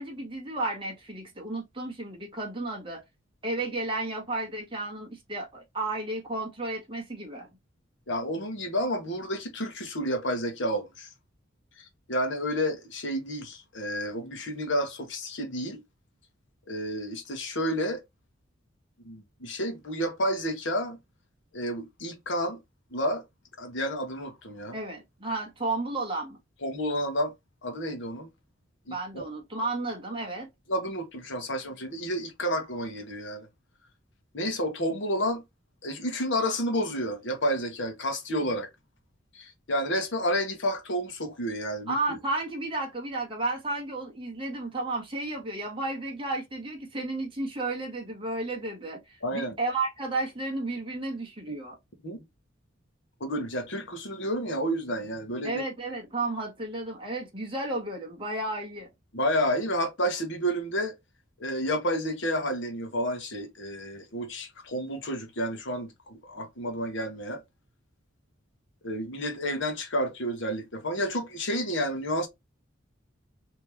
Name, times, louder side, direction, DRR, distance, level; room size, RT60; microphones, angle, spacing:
voice 1, 0.0-3.0 3.4-7.5 24.7-26.4 28.9-30.5 41.9-51.8 55.4-58.9, right 2 dB, 25° right, 1.4 m, -33 dB
voice 2, 8.1-11.1 11.8-15.8 16.7-18.0 19.0-21.0 21.5-22.6 22.9-23.2 23.6-24.8 26.6-27.3 27.6-28.3 28.9-29.2 30.7-33.5 34.3-35.4 35.8-38.7 39.3-42.2 49.2-49.5 51.5-51.6 52.0-52.2 53.2-55.6 59.1-61.0 61.4-67.4 68.8-72.3, equal, 65° left, 1.2 m, -30 dB
3.4 x 3.0 x 2.9 m
head